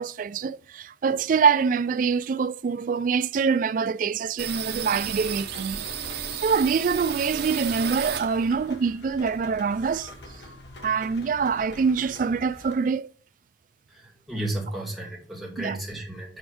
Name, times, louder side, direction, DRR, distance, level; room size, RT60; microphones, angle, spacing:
voice 1, 0.0-10.1 10.8-13.1 15.6-15.8, right 5 dB, 50° right, 0.3 m, -25 dB
sound 1, 4.4-8.7 9.1-10.4 10.7-10.8 11.1-11.8, right 8 dB, 65° right, 0.7 m, -34 dB
Rain, 4.7-12.7, left 1 dB, 85° left, 1.4 m, -45 dB
voice 2, 13.9-16.4, right 1 dB, ahead, 2.0 m, -33 dB
6.2 x 5.0 x 5.0 m
head